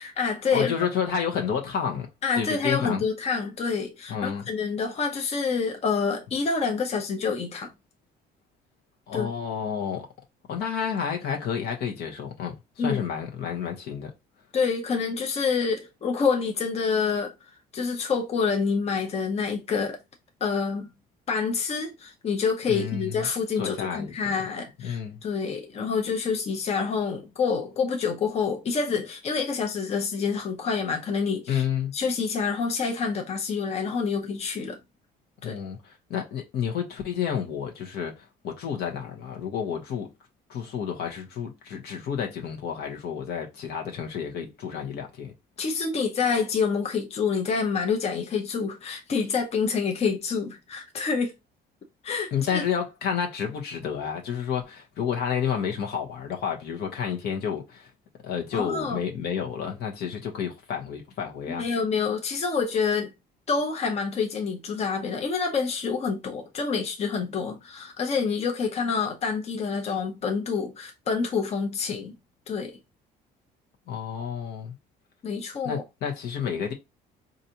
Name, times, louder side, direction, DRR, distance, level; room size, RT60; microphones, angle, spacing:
voice 1, 0.0-0.7 2.2-7.7 9.1-9.3 12.8-13.0 14.5-17.3 17.7-20.0 20.4-20.9 21.3-31.6 31.9-34.8 35.4-35.5 45.6-51.3 52.0-52.6 58.5-59.0 61.5-63.1 63.5-72.2 72.5-72.8 75.2-75.8, left 5 dB, 40° left, 0.8 m, -27 dB
voice 2, 0.5-2.1 2.4-3.0 4.1-4.5 9.1-10.1 10.5-14.1 22.7-23.3 23.6-24.4 24.8-25.2 31.5-31.9 35.4-40.1 40.5-45.3 52.3-57.9 58.2-61.6 73.9-74.8 75.6-76.7, left 7 dB, 70° left, 1.0 m, -30 dB
4.0 x 2.6 x 2.8 m
cardioid pair, 110°, 17 cm